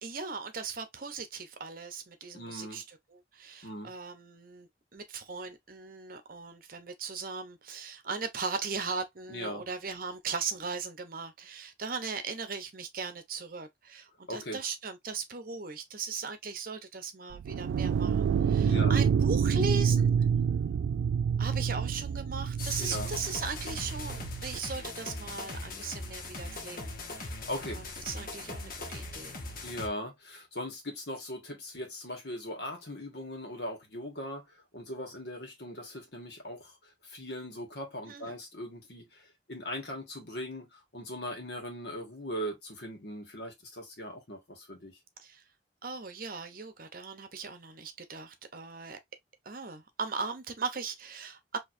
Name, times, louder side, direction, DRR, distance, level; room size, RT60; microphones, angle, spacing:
voice 1, 0.0-2.8 3.1-20.1 21.4-29.4 38.1-38.3 45.2-45.4 45.8-49.0 49.4-51.6, right 4 dB, 50° right, 0.8 m, -38 dB
voice 2, 2.3-2.8 3.6-3.9 9.3-9.6 14.3-14.6 18.6-19.0 22.8-23.1 27.5-27.8 29.6-36.7 37.0-45.0, equal, 65° left, 1.6 m, -39 dB
sound 1, 17.3-24.6, right 7 dB, 90° right, 0.3 m, -28 dB
sound 2, 22.6-29.9, left 2 dB, 50° left, 1.1 m, -40 dB
4.6 x 2.9 x 2.6 m
head